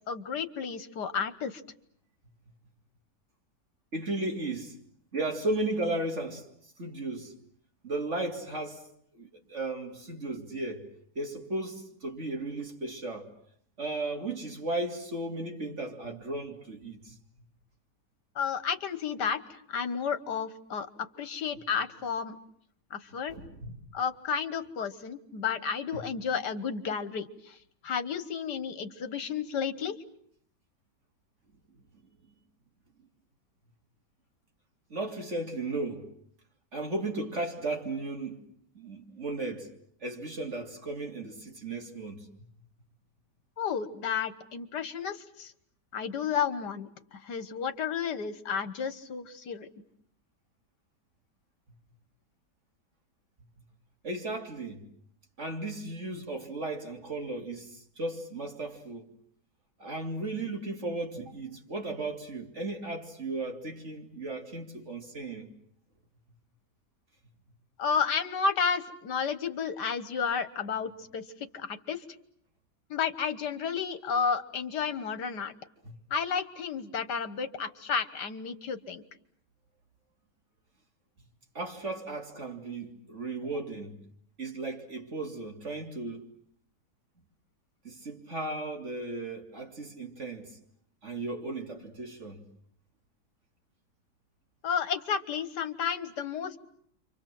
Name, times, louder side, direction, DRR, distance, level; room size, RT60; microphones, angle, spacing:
voice 1, 0.1-1.6 18.4-20.9 21.2-22.4 22.9-23.4 23.9-27.6 27.8-30.0 43.6-45.5 45.9-49.7 67.8-71.2 71.5-72.0 72.9-75.5 76.1-79.0 94.6-96.6, left 6 dB, 75° left, 2.0 m, -32 dB
voice 2, 3.9-4.8 5.1-6.5 6.8-7.3 7.8-8.8 9.1-10.8 11.2-13.3 13.8-17.2 23.3-23.8 25.9-26.0 34.9-36.1 36.7-38.4 38.8-39.7 40.0-42.5 54.0-54.9 55.4-59.1 59.8-65.5 75.8-75.9 81.6-84.0 84.4-86.4 87.8-90.6 91.0-92.4, right 2 dB, 40° right, 3.5 m, -35 dB
29.0 x 25.5 x 7.7 m
omnidirectional pair, 1.8 m